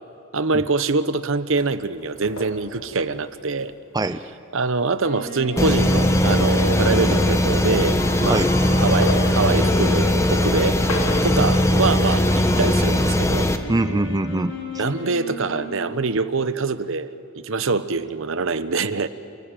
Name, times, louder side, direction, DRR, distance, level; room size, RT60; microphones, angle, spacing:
voice 1, 0.3-3.7 4.5-8.4 8.8-10.8 11.2-13.5 14.8-19.1, right 4 dB, 65° right, 13 dB, 0.9 m, -24 dB
sound 1, 1.5-3.7 4.7-4.8 5.0-8.2 8.5-11.7, left 2 dB, 80° left, 2.2 m, -35 dB
Wind instrument woodwind instrument, 5.0-16.1, left 1 dB, 60° left, 7.9 m, -32 dB
sound 2, 5.6-13.6, left 1 dB, 15° left, 1.2 m, -19 dB
voice 2, 13.7-14.9, right 2 dB, 20° right, 11 dB, 0.5 m, -23 dB
28.5 x 18.5 x 9.1 m, 2.4 s
head